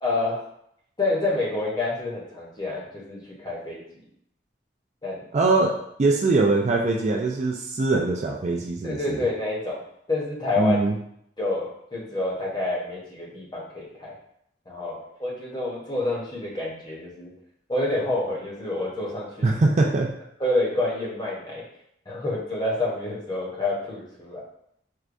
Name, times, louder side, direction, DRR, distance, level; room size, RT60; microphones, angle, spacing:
voice 1, 0.0-0.4 1.0-3.8 5.0-5.3 8.8-9.8 10.1-10.8 11.4-14.1 14.7-17.3 17.7-19.6 20.4-21.6 22.1-24.4, left 2 dB, 25° left, -4 dB, 0.8 m, -28 dB
voice 2, 5.3-9.2 10.6-10.9 19.4-20.1, right 3 dB, 40° right, 0 dB, 0.3 m, -22 dB
4.6 x 2.2 x 2.5 m, 0.72 s
head